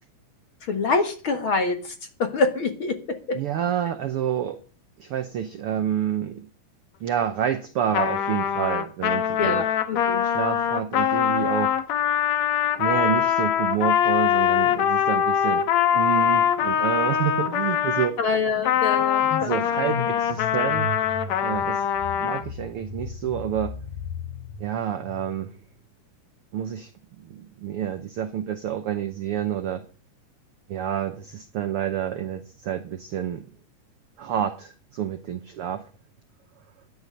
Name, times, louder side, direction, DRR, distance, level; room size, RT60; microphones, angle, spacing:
voice 1, 0.6-1.9 2.2-3.4 9.4-10.2 18.2-19.6, left 3 dB, 50° left, 1.9 m, -25 dB
voice 2, 3.3-4.6 5.0-6.5 7.0-9.6 10.2-11.7 12.8-15.6 15.9-18.2 19.4-20.9 21.4-21.9 22.2-23.8 24.6-25.5 26.5-26.9 27.2-29.8 30.7-33.4 34.2-35.9, right 10 dB, 75° right, 1.3 m, -28 dB
Trumpet, 7.9-18.1 18.6-22.4, left 9 dB, 65° left, 2.1 m, -23 dB
sound 1, 17.4-25.6, left 3 dB, 85° left, 3.2 m, -38 dB
12.0 x 11.0 x 6.6 m
omnidirectional pair, 3.7 m